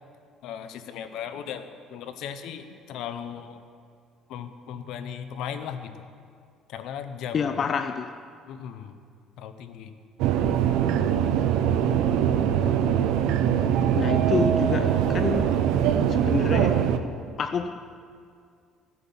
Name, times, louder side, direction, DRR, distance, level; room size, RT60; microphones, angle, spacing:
voice 1, 0.4-3.6 4.3-5.9 6.7-7.6 8.5-8.9 9.4-9.9, left 8 dB, 65° left, 0.8 m, -37 dB
voice 2, 7.3-8.2 13.9-15.6 16.1-16.9 17.4-17.8, left 6 dB, 35° left, 0.3 m, -28 dB
sound 1, 10.2-17.0, right 9 dB, 80° right, 0.6 m, -22 dB
14.0 x 8.0 x 5.5 m
cardioid pair, 150°, 0 cm